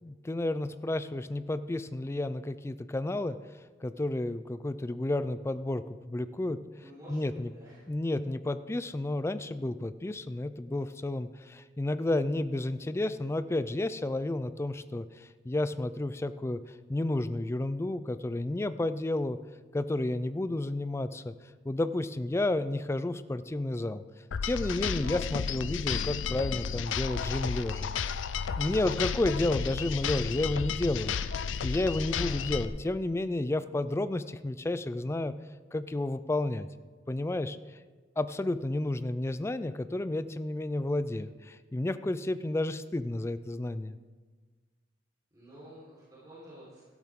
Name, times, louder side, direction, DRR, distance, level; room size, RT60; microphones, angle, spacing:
voice 1, 0.0-3.4 3.8-7.5 7.9-16.6 16.9-19.4 19.7-21.3 21.6-24.0 24.4-27.9 28.6-31.2 31.6-35.3 35.7-36.7 37.1-37.6 38.2-44.0, left 2 dB, 15° left, 13 dB, 0.3 m, -31 dB
voice 2, 6.8-7.7 31.2-31.3 32.0-32.4 45.3-46.8, right 1 dB, 20° right, -8 dB, 4.0 m, -51 dB
sound 1, 24.3-32.6, left 6 dB, 85° left, 0.5 m, -32 dB
13.0 x 12.0 x 3.7 m, 1.4 s
head